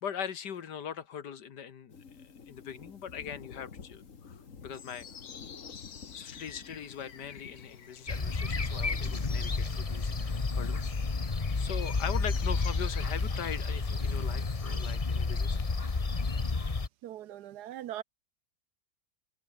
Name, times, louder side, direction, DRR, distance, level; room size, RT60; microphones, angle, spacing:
voice 1, 0.0-5.1 6.1-10.1 10.5-10.9 11.6-15.6, left 8 dB, 90° left, 2.1 m, -41 dB
sound 1, 1.9-16.8, left 5 dB, 50° left, 2.1 m, -53 dB
sound 2, 4.7-15.0, left 7 dB, 65° left, 1.9 m, -51 dB
sound 3, 8.1-16.9, left 3 dB, 25° left, 1.2 m, -31 dB
voice 2, 17.0-18.0, right 12 dB, 80° right, 1.3 m, -40 dB
omnidirectional pair, 1.7 m